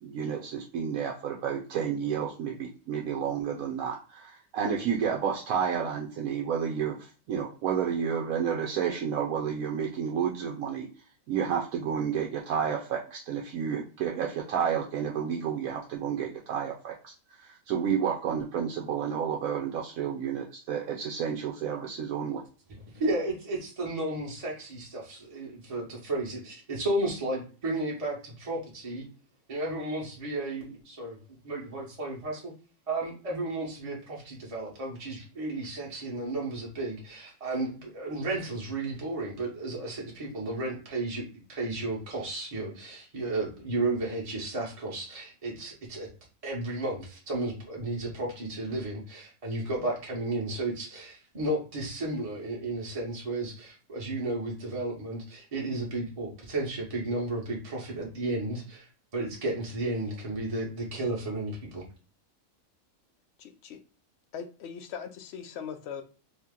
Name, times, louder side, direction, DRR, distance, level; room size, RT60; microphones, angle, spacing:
voice 1, 0.0-10.9 11.3-17.1 17.4-22.4, right 7 dB, 85° right, 0 dB, 1.0 m, -31 dB
voice 2, 22.7-29.0 29.5-31.2 31.4-32.5 32.9-46.1 46.4-61.8, right 2 dB, 30° right, -3 dB, 0.9 m, -33 dB
voice 3, 63.4-63.8 64.3-66.0, left 7 dB, 65° left, 8 dB, 0.7 m, -40 dB
2.8 x 2.8 x 3.6 m, 0.37 s
omnidirectional pair, 1.4 m